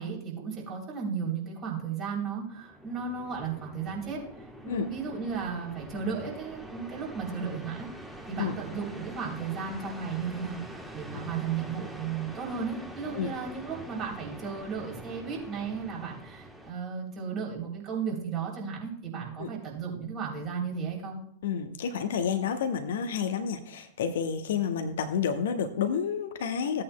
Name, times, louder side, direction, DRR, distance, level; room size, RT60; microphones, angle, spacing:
voice 1, 0.0-7.9 8.3-21.2, right 6 dB, 35° right, -1 dB, 3.3 m, -34 dB
sound 1, 2.3-16.7, right 1 dB, 5° right, 1.1 m, -45 dB
voice 2, 21.4-26.8, left 7 dB, 60° left, 8 dB, 0.8 m, -30 dB
15.5 x 8.6 x 2.2 m, 0.68 s
figure-of-eight pair, 90°, 0 cm